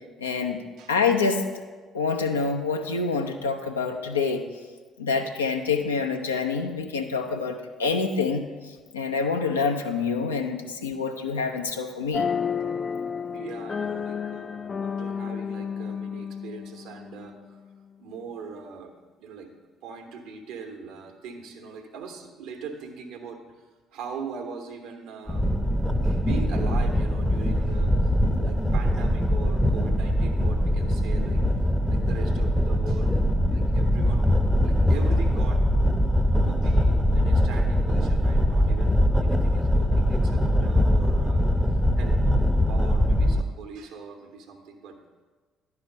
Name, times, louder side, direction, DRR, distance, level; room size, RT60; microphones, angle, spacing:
voice 1, 0.2-0.6 0.9-1.5 1.9-4.4 5.0-8.5 8.9-12.3, left 5 dB, 85° left, 4 dB, 0.5 m, -26 dB
sound 1, 12.1-17.6, left 6 dB, 35° left, 0.3 m, -31 dB
voice 2, 13.3-17.6 18.0-18.9 19.2-19.5 19.8-23.4 23.9-25.6 26.0-31.4 31.9-34.3 34.6-35.6 36.4-41.4 41.7-42.2 42.7-45.0, right 5 dB, 65° right, 4 dB, 1.0 m, -41 dB
sound 2, 25.3-43.4, equal, ahead, 0.6 m, -22 dB
11.0 x 4.9 x 5.0 m, 1.4 s
figure-of-eight pair, 50°, 0 cm